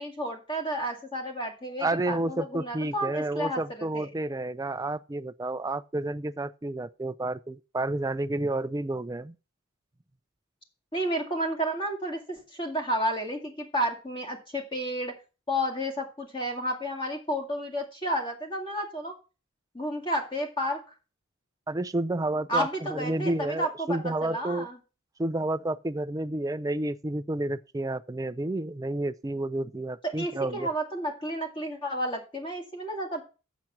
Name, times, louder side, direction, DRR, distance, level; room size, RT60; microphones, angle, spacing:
voice 1, 0.0-4.1 10.9-15.1 15.5-19.1 19.7-20.8 22.5-24.8 30.2-33.2, equal, 25° left, 2.1 m, -31 dB
voice 2, 1.8-9.3 21.7-24.7 25.2-30.7, right 2 dB, 15° right, 0.4 m, -30 dB
7.8 x 7.2 x 5.8 m
head